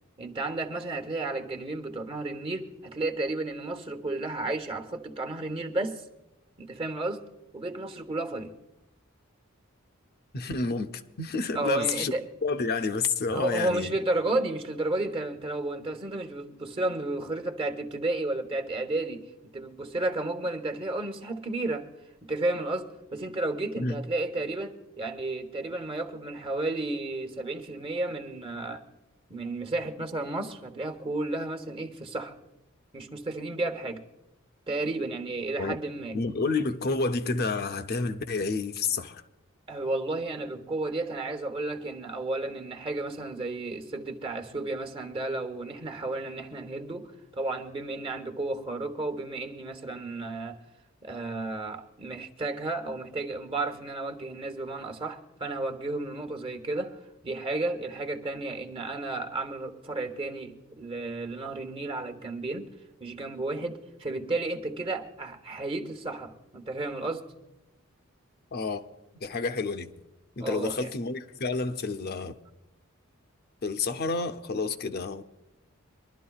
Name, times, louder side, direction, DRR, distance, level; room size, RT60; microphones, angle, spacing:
voice 1, 0.2-6.1 6.6-7.2 7.5-8.5 11.5-12.2 13.3-19.3 19.5-21.9 22.2-28.8 29.3-32.4 32.9-34.0 34.7-36.2 39.7-50.6 51.0-62.7 63.0-67.3 70.4-70.9, right 2 dB, 25° right, 1.0 m, -32 dB
voice 2, 10.3-12.1 12.4-13.9 23.8-24.0 35.6-35.8 36.1-39.2 68.5-68.9 69.2-69.9 70.4-72.4 73.6-75.2, left 4 dB, 50° left, 0.6 m, -29 dB
24.5 x 12.0 x 2.3 m
head